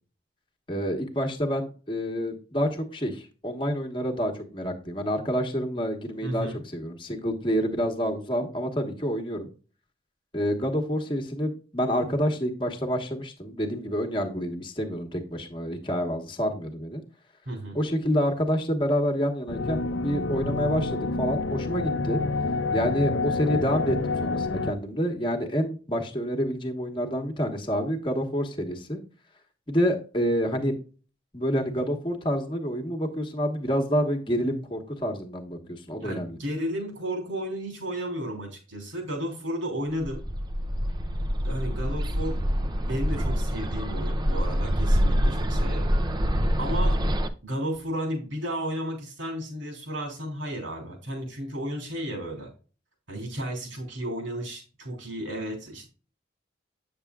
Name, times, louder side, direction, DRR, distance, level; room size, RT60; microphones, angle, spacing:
voice 1, 0.7-9.5 10.3-17.0 17.7-22.2 22.7-29.0 29.7-30.7 31.3-36.4, equal, 25° left, 3 dB, 1.2 m, -28 dB
voice 2, 6.2-6.6 17.4-17.8 36.0-40.2 41.4-45.9 46.6-47.0 47.4-52.5 53.1-55.9, equal, 80° right, 1 dB, 3.3 m, -33 dB
sound 1, 19.5-24.7, left 3 dB, 75° left, 0.6 m, -28 dB
Bird, 40.0-47.3, equal, 20° right, 0.5 m, -25 dB
8.8 x 6.9 x 2.3 m, 0.36 s
head